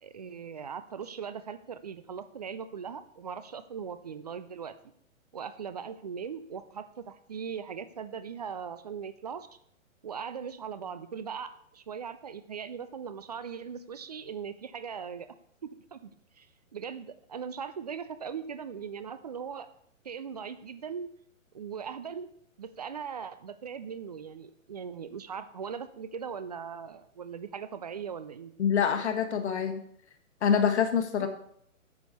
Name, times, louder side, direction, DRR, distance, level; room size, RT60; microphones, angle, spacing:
voice 1, 0.0-4.7 5.3-9.5 10.0-15.3 15.6-16.1 16.4-16.5 16.7-19.7 20.0-21.1 21.5-22.3 22.6-28.5 31.2-31.3, right 7 dB, 30° right, 12 dB, 0.4 m, -39 dB
voice 2, 28.6-29.8 30.4-31.3, left 7 dB, 55° left, 6 dB, 1.5 m, -25 dB
9.4 x 6.9 x 4.2 m, 0.69 s
figure-of-eight pair, 125°, 40 cm